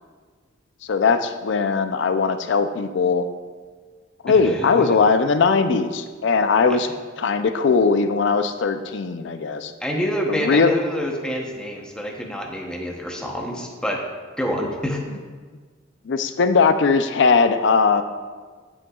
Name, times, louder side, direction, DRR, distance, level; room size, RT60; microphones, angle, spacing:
voice 1, 0.9-3.3 4.2-6.9 7.2-9.7 10.3-10.7 16.1-18.0, left 4 dB, 65° left, 10 dB, 0.4 m, -19 dB
voice 2, 4.3-4.9 6.7-6.8 9.8-14.0 14.4-15.1, equal, 5° left, 0 dB, 0.8 m, -27 dB
10.5 x 6.2 x 2.3 m, 1.5 s
head